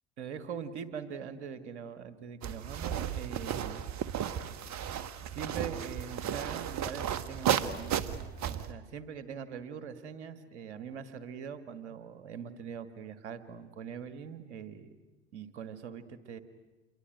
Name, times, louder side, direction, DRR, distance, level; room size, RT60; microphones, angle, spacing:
voice 1, 0.2-3.8 5.2-8.0 8.5-14.9 15.3-16.4, right 7 dB, 85° right, 11 dB, 1.9 m, -42 dB
sound 1, 2.4-8.7, right 9 dB, 55° right, 1.7 m, -34 dB
28.0 x 23.0 x 9.1 m, 1.2 s
hypercardioid pair, 65°, 33 cm